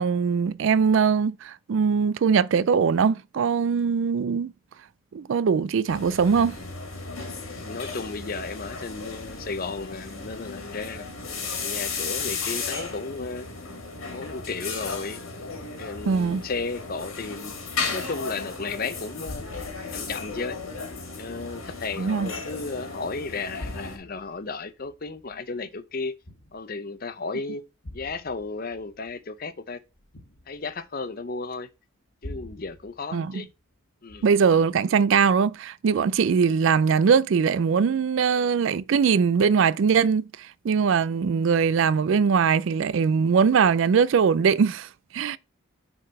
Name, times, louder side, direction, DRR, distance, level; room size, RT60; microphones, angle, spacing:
voice 1, 0.0-4.5 5.1-6.6 16.1-16.5 22.0-22.3 33.1-33.4 34.2-44.9 45.1-45.4, right 6 dB, 65° right, 0.3 m, -21 dB
sound 1, 5.9-24.0, left 4 dB, 80° left, 2.4 m, -35 dB
voice 2, 7.6-11.0 11.6-13.5 14.1-15.3 15.8-17.6 17.8-19.4 19.9-20.6 21.2-26.1 26.5-27.6 27.9-29.8 30.5-31.7 32.2-33.5 34.0-34.3, left 4 dB, 45° left, 0.6 m, -34 dB
sound 2, 15.9-18.2 18.5-19.0 19.2-23.0 23.3-27.0 27.8-31.4 32.2-33.8 34.1-34.6, left 1 dB, 60° left, 1.6 m, -46 dB
6.7 x 3.9 x 5.2 m
head